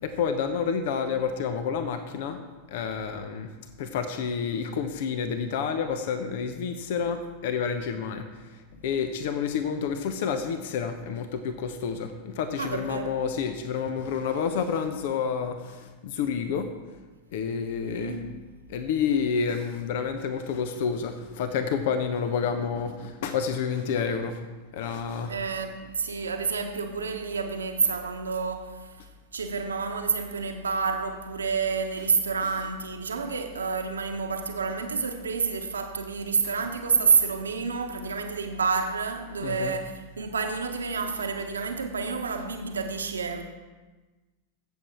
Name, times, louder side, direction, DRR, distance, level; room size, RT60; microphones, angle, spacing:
voice 1, 0.0-2.4 2.7-3.5 3.8-8.3 8.8-16.7 17.3-18.1 18.7-24.4 24.7-25.3 39.4-39.7, left 6 dB, 50° left, 0.9 m, -29 dB
voice 2, 12.6-13.2 17.8-18.4 25.3-43.4, right 5 dB, 70° right, 1.2 m, -29 dB
15.5 x 7.6 x 4.5 m
figure-of-eight pair, 90°, 0 cm